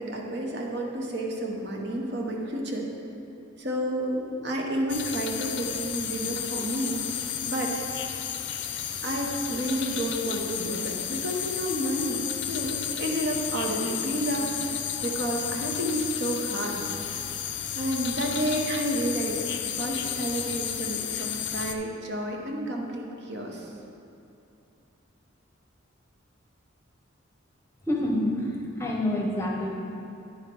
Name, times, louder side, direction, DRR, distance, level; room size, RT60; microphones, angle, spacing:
voice 1, 0.0-2.9 3.6-7.0 7.4-7.7 9.0-14.7 15.0-17.1 17.7-19.4 19.7-23.7, right 1 dB, 55° right, 0 dB, 1.0 m, -30 dB
sound 1, 4.9-21.7, left 9 dB, 55° left, 0.5 m, -32 dB
voice 2, 27.9-29.7, left 1 dB, 15° left, -1 dB, 0.8 m, -27 dB
9.8 x 5.7 x 4.6 m, 2.7 s
head